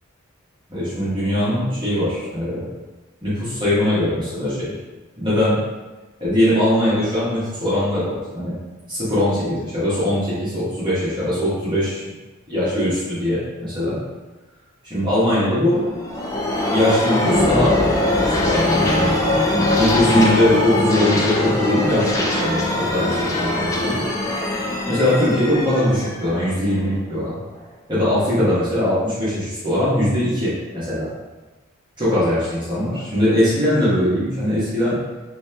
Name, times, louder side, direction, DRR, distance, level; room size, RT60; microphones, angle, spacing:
voice 1, 0.7-2.6 3.2-4.7 5.2-5.6 6.2-8.5 8.9-12.0 12.5-14.0 14.9-15.8 16.7-17.8 18.1-19.1 19.4-19.5 19.8-24.0 24.9-27.4 27.9-31.1 32.0-35.0, left 1 dB, 20° right, -11 dB, 1.1 m, -21 dB
sound 1, 15.7-27.2, left 1 dB, 15° left, 0.4 m, -21 dB
3.1 x 2.8 x 3.3 m, 1.2 s
head